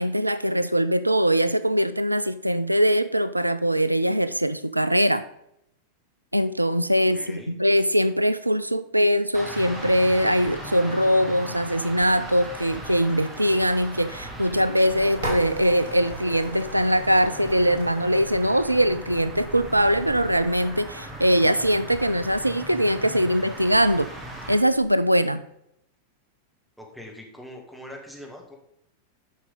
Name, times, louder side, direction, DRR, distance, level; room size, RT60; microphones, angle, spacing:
voice 1, 0.0-5.3 6.3-24.1 24.5-25.4, equal, 85° right, 14 dB, 0.3 m, -22 dB
voice 2, 6.9-7.5 26.8-28.6, equal, ahead, 1 dB, 1.8 m, -42 dB
sound 1, 9.3-24.5, right 1 dB, 20° right, 2.2 m, -38 dB
sound 2, 14.9-24.9, right 1 dB, 70° right, 2.2 m, -40 dB
10.0 x 5.8 x 4.0 m, 0.77 s
figure-of-eight pair, 90°, 0 cm